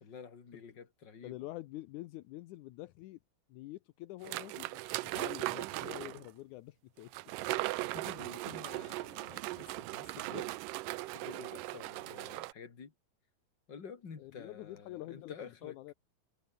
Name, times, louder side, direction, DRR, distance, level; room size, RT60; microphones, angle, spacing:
voice 1, 0.0-1.3 7.9-10.7 11.1-12.9 13.7-15.8, left 6 dB, 35° left, 3.1 m, -50 dB
voice 2, 1.2-3.2 3.5-7.1 14.2-15.9, left 17 dB, 80° left, 2.1 m, -47 dB
sound 1, 4.2-6.3 7.1-12.5, right 19 dB, 80° right, 2.3 m, -38 dB
omnidirectional pair, 3.8 m